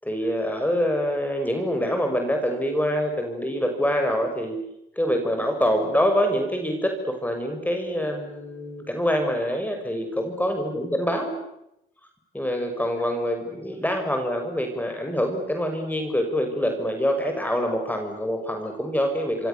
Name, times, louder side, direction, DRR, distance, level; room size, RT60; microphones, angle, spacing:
voice 1, 0.0-4.6 5.0-11.4 12.3-19.5, equal, 10° left, 4 dB, 6.1 m, -25 dB
28.0 x 26.0 x 7.0 m, 0.84 s
supercardioid pair, 60°, 21 cm